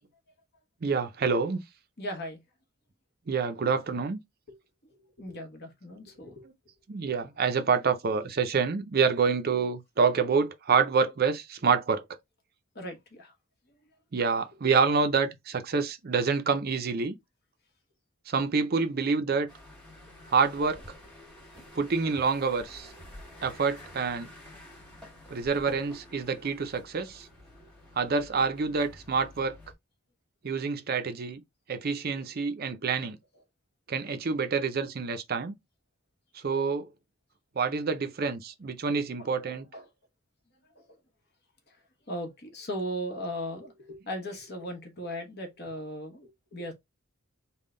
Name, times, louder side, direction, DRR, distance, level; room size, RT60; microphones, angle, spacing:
voice 1, 0.8-1.6 3.3-4.2 6.4-6.5 6.9-12.0 14.1-17.2 18.3-19.5 20.3-20.8 21.8-22.9 23.4-24.3 25.3-27.3 28.0-29.6 30.4-31.4 31.7-33.2 33.9-35.5 36.3-36.9 37.6-39.7, right 5 dB, 45° right, 0.5 m, -27 dB
voice 2, 2.0-2.4 4.9-6.4 12.7-13.3 39.2-39.3 39.7-39.8 42.1-46.7, equal, 50° left, 1.2 m, -37 dB
sound 1, 19.5-29.7, left 1 dB, 5° left, 1.4 m, -50 dB
3.7 x 2.2 x 3.7 m
head